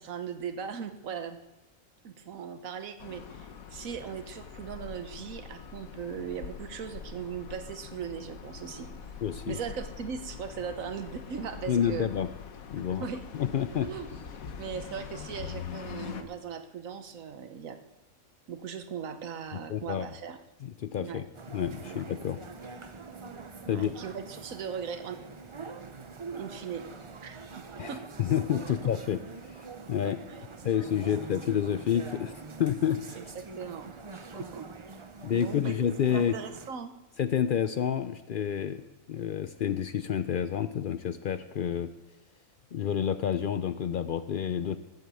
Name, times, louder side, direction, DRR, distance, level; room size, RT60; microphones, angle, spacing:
voice 1, 0.0-1.4 2.0-8.9 9.5-12.1 13.0-13.2 13.7-14.1 14.6-17.8 18.5-20.4 21.0-21.2 21.8-22.0 23.7-25.2 26.4-26.8 27.2-28.0 28.8-28.9 30.0-30.7 31.1-31.2 33.2-34.0 34.3-35.0 35.3-35.8 36.1-36.9, right 7 dB, 75° right, 9 dB, 1.4 m, -39 dB
sound 1, 3.0-16.2, left 7 dB, 85° left, 1.4 m, -43 dB
voice 2, 9.2-9.6 11.7-12.3 12.7-13.1 13.3-13.9 19.7-20.1 20.6-21.2 21.5-22.4 23.7-23.9 27.8-29.2 29.9-30.2 30.6-32.3 32.6-33.2 35.2-36.3 37.2-38.8 39.1-41.9 42.7-44.8, left 9 dB, 70° left, 11 dB, 0.5 m, -29 dB
Walk down High St no cars, 21.3-36.7, right 4 dB, 35° right, 0.5 m, -45 dB
14.5 x 8.0 x 7.0 m, 1.0 s
omnidirectional pair, 1.4 m